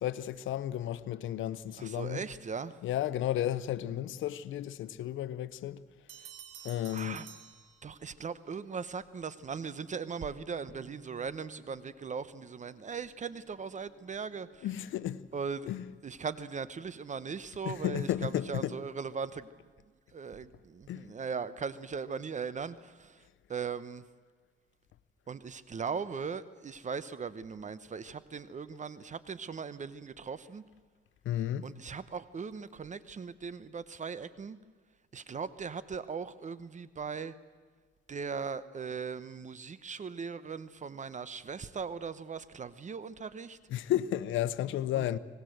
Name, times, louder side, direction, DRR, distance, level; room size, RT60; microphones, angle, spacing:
voice 1, 0.0-2.2 2.8-5.8 6.6-7.2 14.6-15.2 15.6-15.9 17.6-18.7 20.9-21.1 31.2-31.7 43.7-45.2, left 12 dB, 80° left, 0.9 m, -33 dB
voice 2, 1.8-2.8 6.9-7.3 7.8-14.7 15.3-15.7 16.0-19.5 20.1-23.2 23.5-24.0 25.3-30.6 31.6-34.6 35.1-37.3 38.1-43.6 44.9-45.0, right 5 dB, 40° right, 0.9 m, -39 dB
Bell, 6.1-8.3, right 8 dB, 90° right, 2.7 m, -51 dB
Bowed string instrument, 10.1-15.7, right 1 dB, 45° left, 4.4 m, -60 dB
25.0 x 19.5 x 7.9 m
cardioid pair, 90°, 20 cm